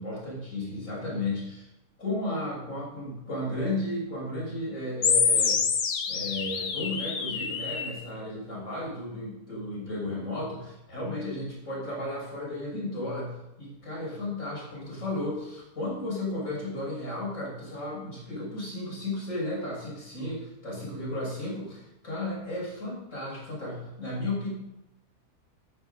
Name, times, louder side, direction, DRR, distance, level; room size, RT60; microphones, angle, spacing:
voice 1, 0.0-1.7 2.0-5.6 6.1-24.5, left 1 dB, 50° left, -4 dB, 6.6 m, -34 dB
sound 1, 5.0-8.0, left 6 dB, 75° left, 1.7 m, -26 dB
13.5 x 10.0 x 5.2 m, 0.92 s
omnidirectional pair, 1.7 m